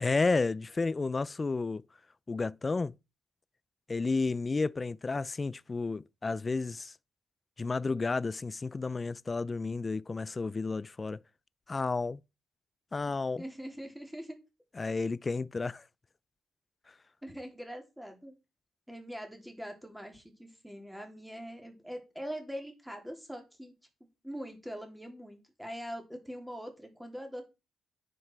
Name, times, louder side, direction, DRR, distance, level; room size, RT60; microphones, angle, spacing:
voice 1, 0.0-1.8 2.3-2.9 3.9-6.9 7.6-11.2 11.7-12.2 12.9-13.4 14.8-15.8, left 3 dB, 25° left, 0.4 m, -31 dB
voice 2, 13.1-14.4 17.2-18.4 18.9-23.7 24.2-27.4, equal, ahead, 3.1 m, -43 dB
9.8 x 5.3 x 4.5 m
cardioid pair, 90°, 0 cm